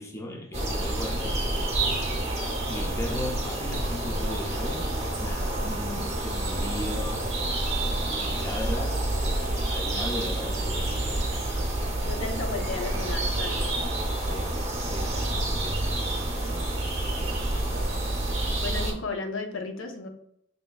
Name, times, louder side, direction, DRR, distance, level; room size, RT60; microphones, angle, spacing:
voice 1, 0.0-1.4 2.7-7.3 7.9-9.1 9.7-11.0 14.2-15.9, left 1 dB, 15° left, 0.5 m, -37 dB
sound 1, 0.5-18.9, right 1 dB, 35° right, 0.8 m, -28 dB
voice 2, 12.0-13.7 18.6-20.1, left 3 dB, 75° left, 0.7 m, -34 dB
5.2 x 3.4 x 2.2 m
head